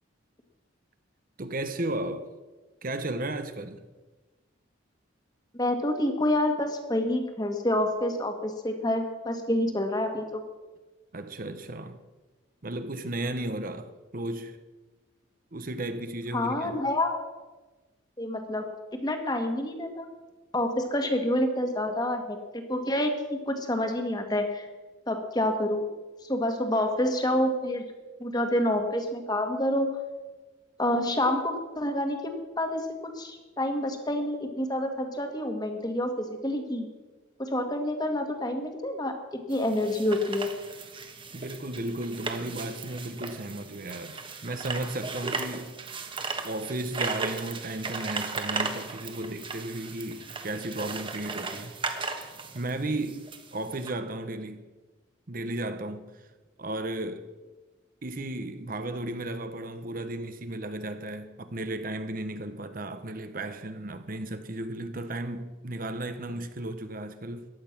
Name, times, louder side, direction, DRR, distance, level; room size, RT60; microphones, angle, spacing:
voice 1, 1.4-2.3 2.8-3.8 11.1-12.0 12.6-14.6 15.5-16.8 41.3-45.7 46.4-51.8 52.5-53.2 53.5-54.6 55.3-56.3 56.6-57.3 58.0-67.5, right 1 dB, 45° right, 0.9 m, -34 dB
voice 2, 5.5-10.4 16.3-17.2 18.2-20.1 20.5-24.7 25.1-25.8 26.3-27.9 28.2-30.0 30.8-32.9 33.2-36.9 37.4-40.5, left 1 dB, 20° left, 1.7 m, -28 dB
sound 1, 39.5-53.9, right 4 dB, 25° right, 1.3 m, -36 dB
15.0 x 11.0 x 6.0 m
head